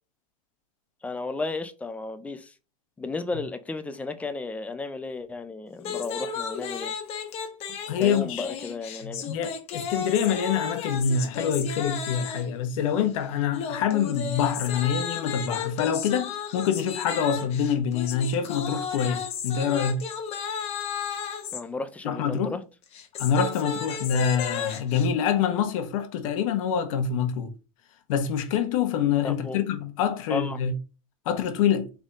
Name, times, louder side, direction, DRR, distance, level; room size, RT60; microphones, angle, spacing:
voice 1, 1.0-2.5 3.0-6.9 8.0-9.3 21.5-22.6 29.2-29.6 30.3-30.6, left 3 dB, 5° left, 0.4 m, -33 dB
sound 1, 5.8-12.6 13.5-21.6 22.8-25.1, left 7 dB, 35° left, 1.0 m, -34 dB
voice 2, 7.9-8.5 9.0-20.0 22.0-22.6 23.2-27.5 28.1-30.7 31.2-31.9, left 7 dB, 65° left, 1.1 m, -26 dB
3.9 x 3.6 x 3.6 m
supercardioid pair, 140°, 18 cm